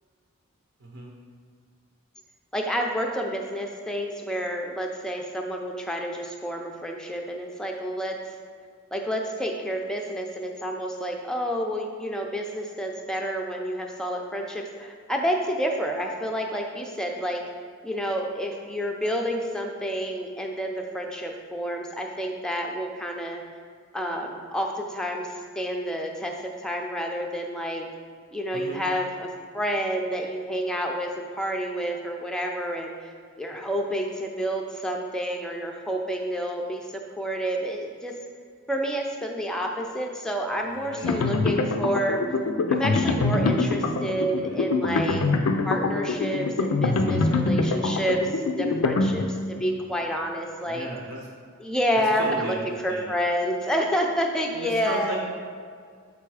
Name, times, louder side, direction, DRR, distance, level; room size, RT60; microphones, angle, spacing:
voice 1, 0.8-1.1 28.5-28.8 40.6-41.2 44.3-44.6 46.9-47.5 48.6-49.0 50.7-51.2 51.9-53.1 54.5-55.2, right 1 dB, 60° right, -2 dB, 0.7 m, -36 dB
voice 2, 2.5-8.2 8.9-17.4 17.8-23.4 23.9-27.9 28.3-29.3 29.5-33.1 33.4-38.2 38.7-42.2 42.7-45.3 45.7-50.9 51.6-55.2, equal, 5° left, 1 dB, 0.5 m, -29 dB
sound 1, 41.0-49.6, left 3 dB, 85° left, 0.5 m, -24 dB
6.9 x 3.4 x 4.8 m, 2.1 s
head